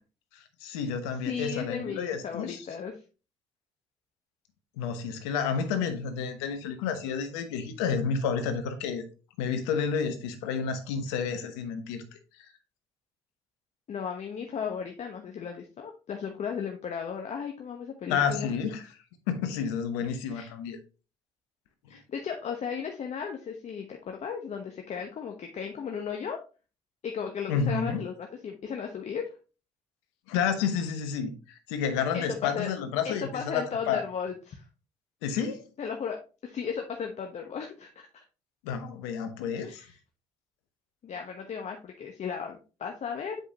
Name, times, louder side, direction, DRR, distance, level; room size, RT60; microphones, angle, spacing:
voice 1, 0.3-2.6 4.8-9.0 9.4-12.0 18.1-18.9 19.3-20.8 27.5-28.0 30.3-34.0 35.2-35.6 38.6-39.8, left 6 dB, 85° left, 8 dB, 1.0 m, -30 dB
voice 2, 1.2-3.0 13.9-18.5 20.3-20.5 21.9-26.4 27.0-29.3 32.1-32.7 33.0-34.6 35.8-38.2 39.6-40.0 41.0-43.4, left 6 dB, 50° left, 3 dB, 1.0 m, -35 dB
7.8 x 5.0 x 2.9 m, 0.33 s
hypercardioid pair, 55°, 14 cm